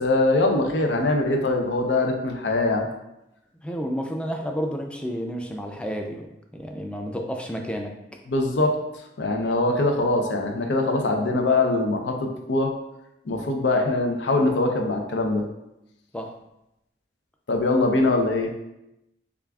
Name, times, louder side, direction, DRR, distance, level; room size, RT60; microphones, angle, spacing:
voice 1, 0.0-2.9 8.3-8.8 9.2-12.7 13.3-15.4 17.5-18.5, left 2 dB, 85° left, 3 dB, 0.6 m, -22 dB
voice 2, 3.6-6.3 6.5-7.9 16.1-16.3, equal, 5° left, 2 dB, 0.4 m, -30 dB
6.7 x 2.4 x 2.3 m, 0.88 s
head